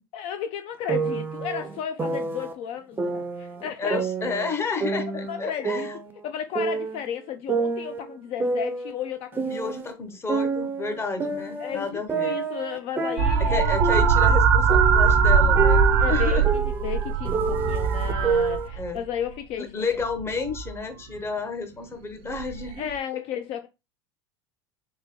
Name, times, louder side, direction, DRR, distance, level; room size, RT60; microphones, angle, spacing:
voice 1, 0.1-4.0 4.3-4.4 5.3-5.9 6.2-9.8 11.6-13.7 16.0-19.9 22.8-23.7, left 9 dB, 50° left, 0.4 m, -33 dB
sound 1, 0.9-2.5 3.0-4.5 4.8-7.1 7.5-9.9 10.3-14.4 14.7-18.7, right 4 dB, 15° right, 0.5 m, -28 dB
voice 2, 3.8-5.9 9.5-12.4 13.4-16.4 18.8-19.0 19.6-22.9, left 4 dB, 20° left, 0.8 m, -31 dB
sound 2, 13.2-19.0 20.2-20.7 22.4-22.6, right 6 dB, 80° right, 0.6 m, -20 dB
3.7 x 2.7 x 3.1 m
supercardioid pair, 115°, 13 cm